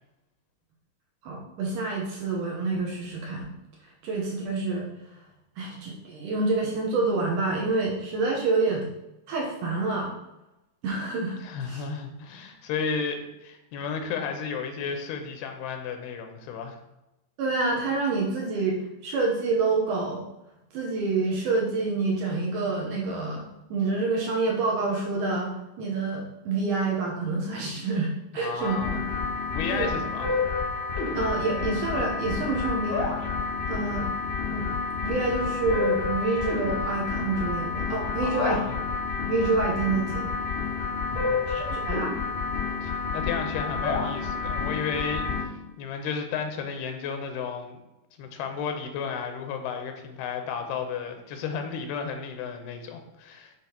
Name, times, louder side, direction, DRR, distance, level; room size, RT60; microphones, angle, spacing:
voice 1, 1.2-3.5 4.0-4.9 5.6-8.9 9.3-10.1 10.8-11.4 11.6-11.8 17.4-20.2 20.7-23.4 23.7-25.5 25.8-28.8 29.7-29.9 31.1-33.1 33.7-34.1 34.5-34.7 35.0-38.6 39.3-40.3 41.5-42.2, right 3 dB, 70° right, -2 dB, 2.0 m, -27 dB
voice 2, 11.4-16.8 28.3-29.0 29.5-30.3 38.2-38.7 41.1-41.6 42.8-47.8 48.2-53.5, left 6 dB, 90° left, 5 dB, 2.6 m, -33 dB
sound 1, 28.6-45.4, left 5 dB, 70° left, 2.5 m, -29 dB
9.7 x 3.5 x 2.8 m, 0.94 s
omnidirectional pair, 4.5 m